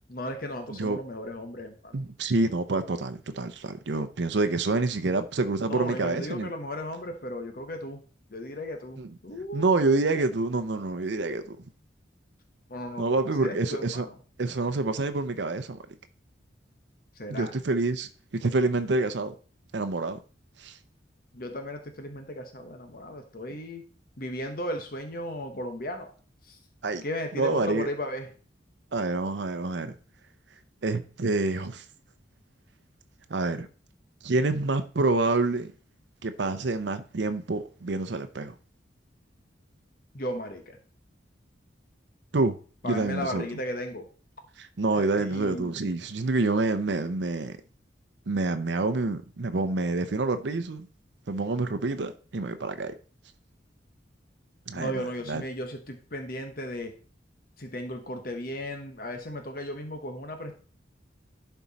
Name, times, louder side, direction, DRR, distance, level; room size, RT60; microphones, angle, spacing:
voice 1, 0.1-2.0 5.7-8.0 8.3-10.1 12.7-14.2 17.2-17.5 21.3-23.8 24.2-26.1 26.5-26.6 27.0-28.3 40.1-40.8 42.8-44.1 45.2-45.8 54.7-56.9 57.6-60.6, left 1 dB, 50° left, 1.1 m, -35 dB
voice 2, 1.9-6.5 9.0-9.1 9.5-11.4 13.0-14.1 14.4-15.8 17.3-19.3 19.7-20.2 20.6-20.8 26.8-27.0 27.4-27.9 28.9-29.9 30.8-31.8 33.3-33.7 34.2-35.7 36.2-38.5 42.3-42.6 42.8-43.5 44.6-47.6 48.3-50.9 51.3-52.9 54.7-55.4, right 3 dB, 70° right, 0.6 m, -27 dB
11.0 x 4.5 x 4.1 m
head